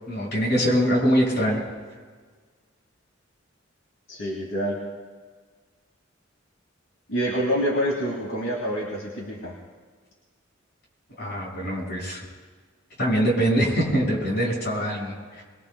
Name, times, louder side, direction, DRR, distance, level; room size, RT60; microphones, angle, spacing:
voice 1, 0.0-1.6 11.2-12.2 13.0-15.4, equal, 55° left, -3 dB, 6.1 m, -23 dB
voice 2, 4.1-4.8 7.1-9.5, equal, 75° left, -3 dB, 2.4 m, -27 dB
23.5 x 22.5 x 2.3 m, 1.5 s
head